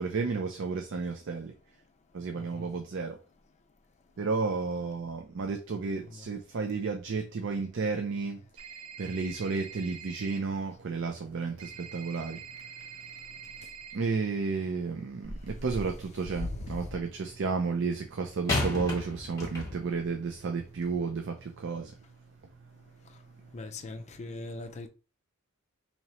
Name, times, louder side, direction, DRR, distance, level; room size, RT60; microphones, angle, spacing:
voice 1, 0.0-1.6 2.1-3.2 4.2-22.0 22.6-22.7 23.4-23.5, right 4 dB, 55° right, 0.5 m, -33 dB
voice 2, 2.3-2.7 16.4-16.9 23.5-24.9, left 2 dB, 30° left, 0.4 m, -39 dB
sound 1, 8.6-10.4 11.6-13.9, right 8 dB, 80° right, 1.0 m, -45 dB
sound 2, 15.2-16.1 18.5-20.0 20.8-20.9, left 2 dB, 15° left, 1.3 m, -33 dB
3.0 x 2.8 x 4.2 m
head